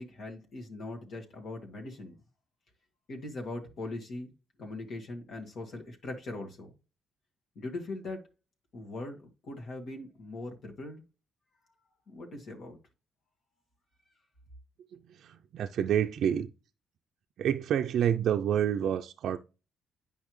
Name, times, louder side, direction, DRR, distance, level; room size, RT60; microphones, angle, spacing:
voice 1, 0.0-2.2 3.1-4.3 4.6-6.7 7.5-8.2 8.7-11.0 12.1-12.8, left 2 dB, 65° left, 1.7 m, -40 dB
voice 2, 14.9-16.5 17.4-19.4, right 9 dB, 70° right, 0.4 m, -28 dB
8.7 x 5.5 x 3.1 m
cardioid pair, 90°, 0 cm